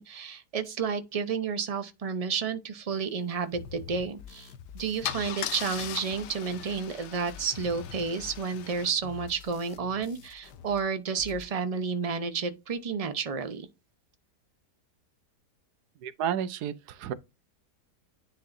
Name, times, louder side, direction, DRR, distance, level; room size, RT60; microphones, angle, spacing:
voice 1, 0.0-13.7, right 5 dB, 35° right, 0.6 m, -31 dB
sound 1, 3.5-10.8 11.1-11.5, left 7 dB, 90° left, 1.4 m, -47 dB
Car / Engine starting / Idling, 4.3-4.5 5.0-8.9, left 10 dB, 70° left, 0.7 m, -39 dB
voice 2, 16.0-17.1, right 9 dB, 75° right, 1.2 m, -31 dB
10.0 x 4.4 x 2.6 m
omnidirectional pair, 1.7 m